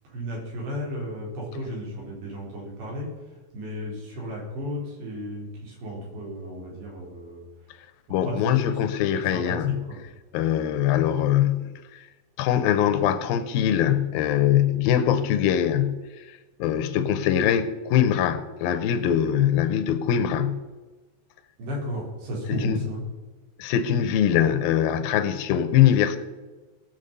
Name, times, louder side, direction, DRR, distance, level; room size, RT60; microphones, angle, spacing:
voice 1, 0.1-3.1 3.5-7.5 8.1-8.7 9.1-9.5 9.9-10.0 21.6-23.0, equal, 75° right, 6.3 m, -34 dB
voice 2, 8.1-9.8 10.3-11.7 12.4-16.1 16.6-20.6 22.5-22.9 23.6-26.2, left 10 dB, 75° left, 2.2 m, -22 dB
19.5 x 7.3 x 5.4 m
omnidirectional pair, 4.9 m